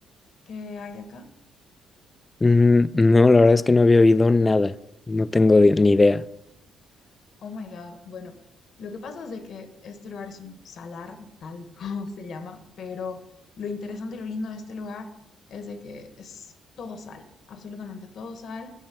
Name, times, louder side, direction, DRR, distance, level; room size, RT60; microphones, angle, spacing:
voice 1, 0.5-1.3 7.4-8.3 8.8-13.2 13.6-15.1 15.5-18.7, left 4 dB, 65° left, 1.3 m, -37 dB
voice 2, 2.4-4.7 5.1-6.2, left 3 dB, 20° left, 0.3 m, -17 dB
9.0 x 6.3 x 7.7 m
cardioid pair, 90°, 0 cm